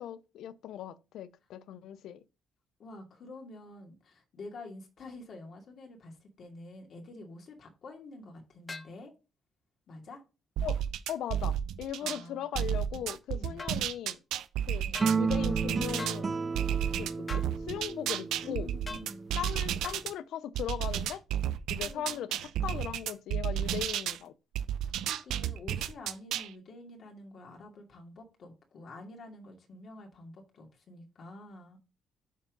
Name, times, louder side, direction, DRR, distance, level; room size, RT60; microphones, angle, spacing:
voice 1, 0.0-2.2 10.6-10.8 11.1-14.2 14.7-14.8 15.2-16.3 17.0-18.7 19.3-21.2 21.7-24.3, left 10 dB, 80° left, 0.5 m, -38 dB
voice 2, 2.8-9.1 9.9-10.2 12.0-12.6 13.3-13.6 14.8-15.1 18.4-19.4 21.8-22.4 24.8-31.8, left 2 dB, 60° left, 2.6 m, -48 dB
sound 1, 8.7-8.9 13.6-13.8 14.9-15.2 16.0-16.2 17.3-17.5 18.9-19.1 19.8-20.0, left 3 dB, 25° left, 0.9 m, -41 dB
sound 2, 10.6-12.2 12.5-16.2 16.5-20.1 20.5-24.2 24.5-26.5, right 10 dB, 85° right, 0.7 m, -32 dB
sound 3, 15.0-19.4, right 5 dB, 30° right, 0.5 m, -33 dB
7.2 x 4.5 x 5.2 m
cardioid pair, 90°, 0 cm